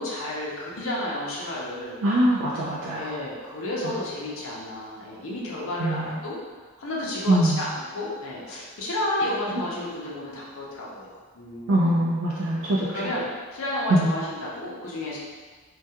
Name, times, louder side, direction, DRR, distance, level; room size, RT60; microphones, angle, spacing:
voice 1, 0.0-2.0 2.9-6.4 6.8-12.1 12.9-15.2, left 1 dB, 70° left, -5 dB, 0.6 m, -31 dB
voice 2, 2.0-3.1 3.8-4.0 5.8-6.1 7.3-7.6 11.7-13.1 13.9-14.1, right 1 dB, 70° right, -5 dB, 0.3 m, -23 dB
2.3 x 2.3 x 2.7 m, 1.5 s
head